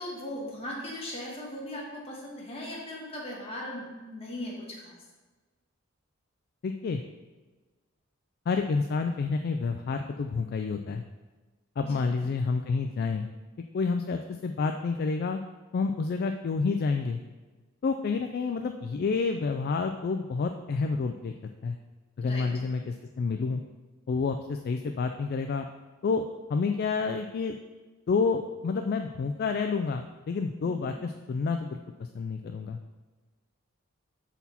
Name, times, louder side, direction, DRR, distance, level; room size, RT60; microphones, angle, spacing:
voice 1, 0.0-4.9 11.8-12.0 22.2-22.5 30.6-30.9, left 1 dB, 30° left, -4 dB, 1.6 m, -38 dB
voice 2, 6.6-7.0 8.5-11.0 11.8-13.3 13.7-15.4 15.7-17.2 17.8-21.3 21.6-21.8 22.2-23.6 24.1-25.7 26.0-26.2 26.5-27.6 28.1-32.8, left 4 dB, 45° left, 5 dB, 0.3 m, -29 dB
6.9 x 4.2 x 4.2 m, 1.3 s
head